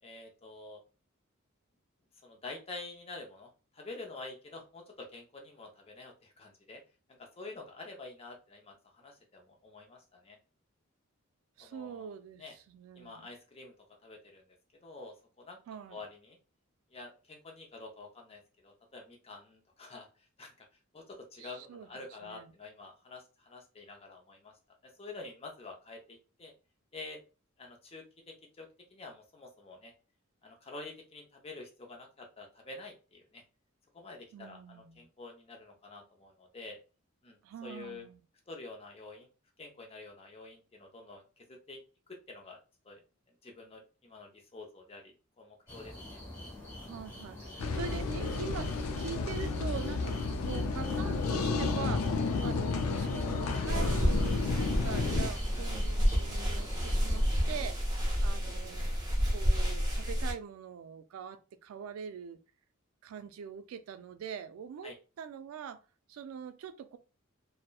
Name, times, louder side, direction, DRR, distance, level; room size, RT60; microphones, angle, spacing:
voice 1, 0.0-0.8 2.2-6.8 7.2-10.4 11.6-12.1 12.4-12.6 12.9-13.7 14.0-14.4 14.8-15.6 15.9-16.4 16.9-20.1 20.4-20.7 20.9-24.5 25.0-26.5 26.9-27.2 27.6-29.9 30.4-33.4 33.9-36.8 37.2-38.1 38.5-39.3 39.6-41.8 42.1-42.6 42.8-43.0 43.4-46.2 54.9-55.1 55.5-55.7 58.1-58.2 64.8-65.0, left 3 dB, 30° left, 0.6 m, -48 dB
voice 2, 11.6-13.3 15.7-16.0 21.4-21.9 22.2-22.5 34.3-35.1 37.4-38.2 46.8-48.7 49.0-50.2 50.4-58.9 59.3-62.4 63.0-65.8 66.1-67.0, right 7 dB, 80° right, 0.3 m, -43 dB
sound 1, 45.7-57.6, left 1 dB, 10° left, 1.0 m, -47 dB
sound 2, 47.6-55.3, left 4 dB, 85° left, 0.3 m, -32 dB
sound 3, 53.7-60.3, equal, 20° right, 0.7 m, -30 dB
2.8 x 2.0 x 2.2 m
head